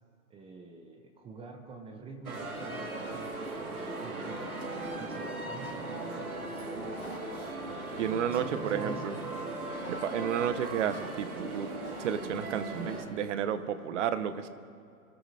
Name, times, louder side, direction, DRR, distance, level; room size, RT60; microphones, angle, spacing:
voice 1, 0.3-3.5 3.8-7.4 7.9-9.2, right 3 dB, 15° right, 4 dB, 0.8 m, -47 dB
sound 1, 2.2-13.0, right 2 dB, 90° right, 2.3 m, -38 dB
sound 2, 2.4-3.8 4.8-5.8 7.0-8.2 9.7-12.1, left 4 dB, 20° left, 3.0 m, -53 dB
voice 2, 8.0-9.1 9.9-11.7 12.0-14.5, right 9 dB, 55° right, 13 dB, 0.9 m, -32 dB
23.0 x 13.0 x 2.8 m, 2.5 s
hypercardioid pair, 125°, 43 cm